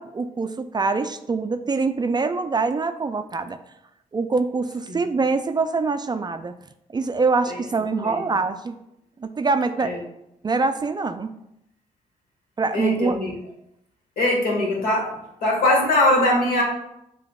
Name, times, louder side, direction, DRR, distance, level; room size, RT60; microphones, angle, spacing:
voice 1, 0.0-3.6 4.1-6.5 6.9-8.7 9.2-9.9 10.4-11.3 12.6-13.2, right 4 dB, 25° right, 9 dB, 0.4 m, -24 dB
voice 2, 7.5-8.2 9.8-10.0 12.7-13.3 14.2-15.1 15.4-16.6, left 1 dB, 70° left, -2 dB, 1.4 m, -22 dB
6.6 x 2.7 x 2.3 m, 0.82 s
supercardioid pair, 50°, 16 cm